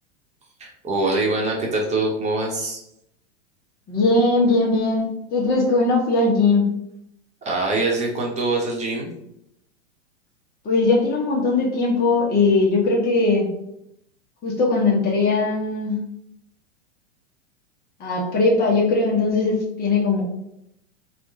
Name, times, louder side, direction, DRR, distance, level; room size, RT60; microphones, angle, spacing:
voice 1, 0.6-2.8 7.4-9.1, right 2 dB, 20° right, -1 dB, 1.1 m, -24 dB
voice 2, 3.9-6.7 10.6-13.5 14.4-16.0 18.0-20.2, left 3 dB, 25° left, -3 dB, 1.0 m, -20 dB
3.7 x 2.4 x 3.6 m, 0.78 s
hypercardioid pair, 105°, 35 cm